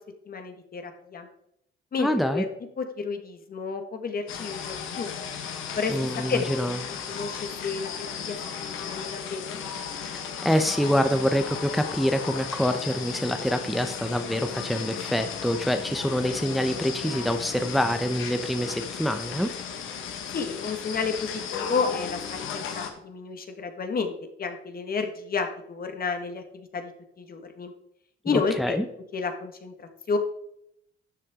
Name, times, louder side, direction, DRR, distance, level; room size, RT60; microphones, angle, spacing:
voice 1, 0.3-1.3 1.9-2.5 2.8-5.1 5.7-5.9 6.3-6.7 7.1-9.6 20.3-26.9 27.2-27.7 28.2-28.8 29.1-30.2, left 5 dB, 50° left, 6 dB, 1.7 m, -31 dB
voice 2, 2.0-2.4 5.9-7.0 10.4-19.5 28.3-28.8, equal, ahead, 7 dB, 0.8 m, -26 dB
sound 1, 4.3-22.9, left 7 dB, 90° left, 1.6 m, -35 dB
12.5 x 7.6 x 3.7 m, 0.74 s
cardioid pair, 90°, 20 cm